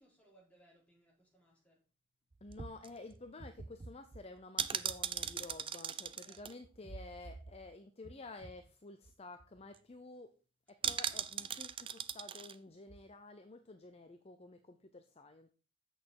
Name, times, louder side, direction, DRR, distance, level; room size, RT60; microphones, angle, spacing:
voice 1, 0.0-1.8 6.0-6.5, right 1 dB, 5° left, -3 dB, 3.7 m, -67 dB
sound 1, 2.3-7.7 8.0-8.1 8.4-8.7 9.1-9.2 9.4-9.8 10.8-12.6 12.9-13.0, right 8 dB, 25° right, 0.4 m, -40 dB
voice 2, 2.4-10.3 10.7-15.5, left 2 dB, 30° left, 7 dB, 0.6 m, -51 dB
8.2 x 6.5 x 4.7 m, 0.35 s
head